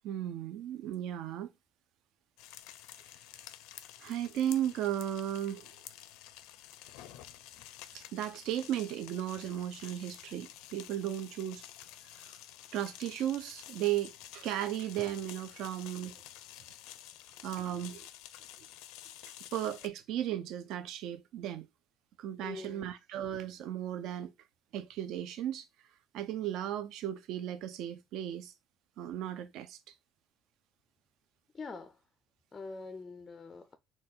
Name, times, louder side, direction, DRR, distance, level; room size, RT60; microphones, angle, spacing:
voice 1, 0.0-1.5 4.0-5.7 7.9-11.6 12.0-12.3 12.7-16.2 17.4-18.1 19.5-21.7 22.2-24.3 24.7-25.7 26.1-28.5 29.0-29.9, right 11 dB, 65° right, 0.4 m, -35 dB
sound 1, 2.4-19.9, left 13 dB, 90° left, 0.5 m, -51 dB
voice 2, 22.4-23.0 31.5-32.0 32.5-33.8, left 4 dB, 20° left, 0.4 m, -44 dB
4.1 x 2.2 x 3.7 m
cardioid pair, 145°, 0 cm